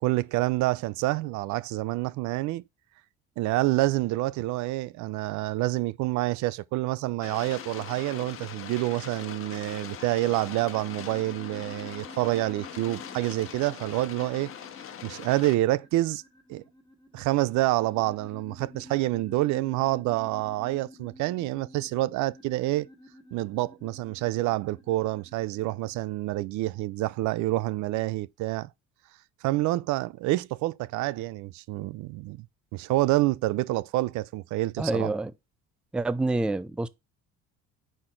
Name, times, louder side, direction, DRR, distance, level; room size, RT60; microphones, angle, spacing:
voice 1, 0.0-2.6 3.4-14.5 15.0-16.2 16.5-16.6 17.1-22.9 23.3-28.7 29.4-32.5 32.7-35.1, right 18 dB, 75° right, 0.5 m, -27 dB
sound 1, 7.2-15.6, left 9 dB, 45° left, 1.2 m, -42 dB
sound 2, 10.6-26.0, left 1 dB, 15° left, 1.9 m, -51 dB
voice 2, 34.8-35.3 35.9-36.9, right 2 dB, 5° right, 0.3 m, -27 dB
5.0 x 4.3 x 4.4 m
cardioid pair, 125°, 30 cm